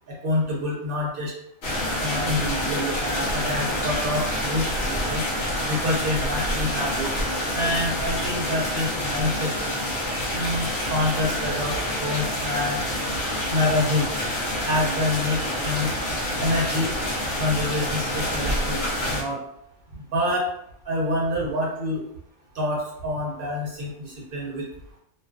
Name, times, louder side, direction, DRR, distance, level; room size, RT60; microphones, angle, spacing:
voice 1, 0.1-1.3 2.0-5.2 5.6-7.1 7.5-9.5 10.3-12.8 13.5-14.1 14.6-15.9 16.4-16.9 17.4-18.8 19.1-19.4 20.1-20.5 20.9-22.0 22.5-24.6, left 1 dB, 55° right, -3 dB, 0.7 m, -27 dB
sound 1, 1.6-19.2, left 1 dB, 65° left, 0.8 m, -27 dB
2.4 x 2.3 x 2.3 m, 0.75 s
omnidirectional pair, 1.3 m